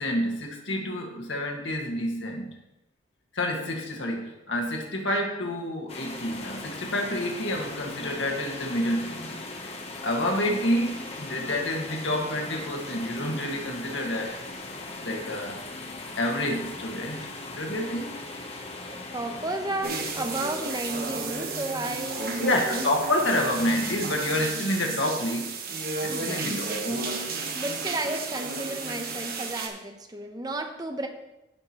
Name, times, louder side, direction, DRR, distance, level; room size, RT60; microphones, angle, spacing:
voice 1, 0.0-2.6 3.3-9.4 10.0-14.3 15.0-15.6 16.1-17.2 17.5-18.1 22.4-25.5 26.0-27.1, left 1 dB, 75° left, 0 dB, 1.7 m, -28 dB
sound 1, 5.9-24.5, left 2 dB, 30° left, 0.9 m, -40 dB
voice 2, 18.9-22.9 26.1-26.5 27.5-31.1, right 2 dB, 20° right, 5 dB, 0.8 m, -33 dB
sound 2, 19.8-29.7, right 4 dB, 50° right, 1.2 m, -33 dB
15.5 x 5.9 x 3.0 m, 0.93 s
head